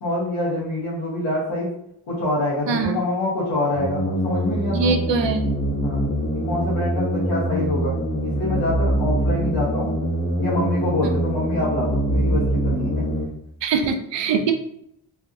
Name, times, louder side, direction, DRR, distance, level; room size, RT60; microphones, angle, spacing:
voice 1, 0.0-1.7 2.1-4.9 5.8-7.9 8.2-9.9 10.4-13.0 14.4-14.5, left 1 dB, 85° left, -9 dB, 1.3 m, -26 dB
voice 2, 2.7-3.0 4.7-5.5 13.6-14.5, right 5 dB, 65° right, 6 dB, 0.6 m, -22 dB
sound 1, 3.7-13.3, equal, 15° left, 0.9 m, -24 dB
3.3 x 2.3 x 2.6 m, 0.76 s
supercardioid pair, 45°, 47 cm